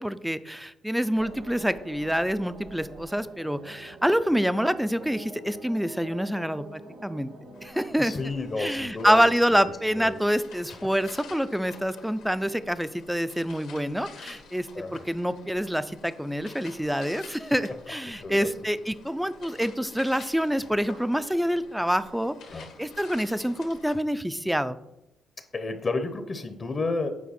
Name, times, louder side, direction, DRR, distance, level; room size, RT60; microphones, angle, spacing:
voice 1, 0.0-7.3 7.6-8.1 8.6-24.8, equal, ahead, 13 dB, 0.4 m, -27 dB
sound 1, 1.1-8.5, right 2 dB, 80° right, 2.1 m, -45 dB
sound 2, 7.5-23.9, left 5 dB, 85° left, 1.5 m, -49 dB
voice 2, 8.0-9.6 10.0-10.2 14.7-15.0 18.2-18.5 22.5-22.7 25.5-27.1, left 3 dB, 35° left, 8 dB, 0.7 m, -31 dB
8.4 x 4.5 x 4.3 m, 0.92 s
cardioid pair, 90°, 0 cm